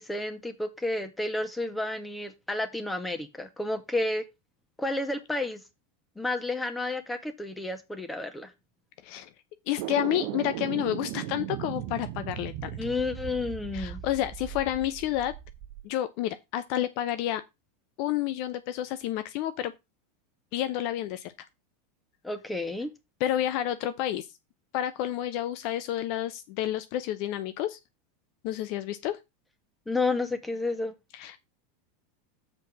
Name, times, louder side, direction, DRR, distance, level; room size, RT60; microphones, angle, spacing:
voice 1, 0.0-4.2 4.8-5.6 6.2-8.5 12.8-14.0 22.2-22.9 29.9-30.9, left 2 dB, 10° left, 1.9 m, -31 dB
voice 2, 9.7-12.7 13.7-15.3 15.8-17.4 18.0-19.7 20.5-21.3 23.2-24.3 24.7-27.8 28.4-29.2 31.1-31.4, left 12 dB, 50° left, 0.7 m, -30 dB
sound 1, 9.8-15.9, right 13 dB, 50° right, 0.7 m, -37 dB
7.6 x 4.4 x 6.1 m
figure-of-eight pair, 85°, 0 cm